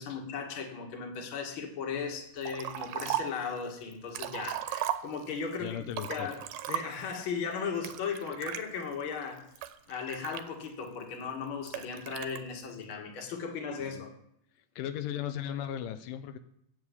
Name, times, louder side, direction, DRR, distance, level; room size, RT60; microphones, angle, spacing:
voice 1, 0.0-5.8 6.1-6.4 6.7-9.5 9.9-14.1, left 6 dB, 45° left, 2 dB, 2.0 m, -36 dB
Liquid, 2.4-3.4 3.9-5.4 5.9-7.1 7.8-8.6 9.2-10.9 11.7-12.4, right 12 dB, 85° right, 2.4 m, -36 dB
voice 2, 5.6-6.3 13.8-14.1 14.8-16.4, left 10 dB, 85° left, 10 dB, 2.3 m, -37 dB
7.8 x 7.2 x 8.3 m, 0.75 s
omnidirectional pair, 3.9 m